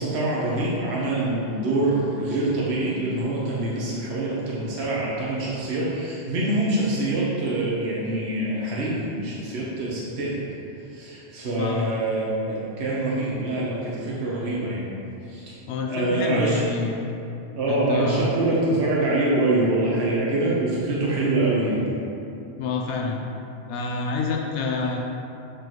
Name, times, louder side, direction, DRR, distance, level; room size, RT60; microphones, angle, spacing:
voice 1, 0.0-10.3 10.9-14.9 15.3-15.6 15.9-16.6 17.6-21.8, right 2 dB, 70° right, -5 dB, 1.2 m, -25 dB
voice 2, 15.7-16.9 17.7-18.3 22.6-23.2 23.7-25.0, left 4 dB, 90° left, 1 dB, 0.9 m, -27 dB
7.7 x 5.0 x 3.0 m, 2.7 s
omnidirectional pair, 1.1 m